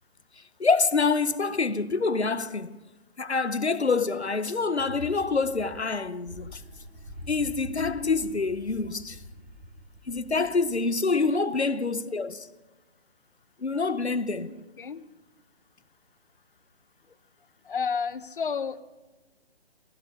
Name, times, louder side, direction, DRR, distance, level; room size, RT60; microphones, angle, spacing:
voice 1, 0.6-2.8 3.2-6.6 7.3-9.2 10.1-12.5 13.6-14.5, left 4 dB, 85° left, 0.9 m, -26 dB
sound 1, 4.6-10.9, equal, 15° right, 1.7 m, -45 dB
voice 2, 7.7-8.3 10.4-10.5 14.5-15.0 17.6-18.8, left 6 dB, 55° left, 0.8 m, -32 dB
15.5 x 14.0 x 5.4 m
figure-of-eight pair, 140°, 32 cm